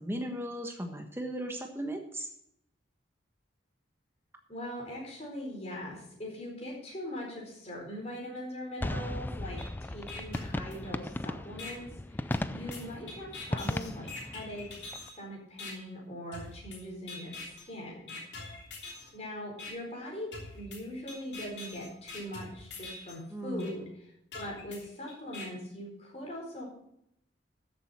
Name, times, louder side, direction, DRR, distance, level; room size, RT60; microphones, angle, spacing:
voice 1, 0.0-2.3 23.3-23.7, right 1 dB, 15° right, 4 dB, 1.2 m, -37 dB
voice 2, 4.5-14.7 15.2-17.4 17.6-18.1 19.1-20.3 20.5-23.9 24.3-26.6, equal, 35° left, -1 dB, 4.4 m, -41 dB
sound 1, 8.8-15.1, left 1 dB, 10° left, 0.3 m, -37 dB
sound 2, 9.6-9.7 10.1-11.1 11.6-11.7 12.3-15.1 15.6-15.7 16.3-16.8 17.1-17.6 18.1-19.1 19.6-19.7 20.3-23.1 23.6-23.7 24.3-25.4, left 3 dB, 65° left, 3.2 m, -44 dB
13.5 x 7.7 x 4.3 m, 0.74 s
head